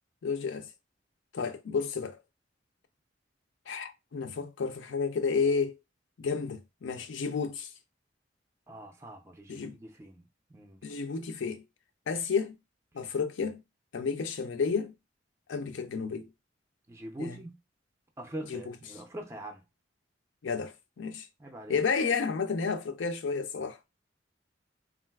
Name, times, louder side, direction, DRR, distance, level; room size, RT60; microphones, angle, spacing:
voice 1, 0.2-0.7 1.3-2.2 3.7-5.8 6.2-7.7 9.5-9.7 10.8-11.6 12.1-12.6 12.9-13.6 13.9-14.9 15.5-16.3 17.2-17.4 18.5-18.6 20.4-21.3 21.7-23.9, left 5 dB, 80° left, 0.5 m, -31 dB
voice 2, 8.7-10.2 10.5-10.8 16.9-17.6 18.2-19.6 21.4-21.8, right 1 dB, 15° right, 0.4 m, -43 dB
3.7 x 2.4 x 2.2 m
head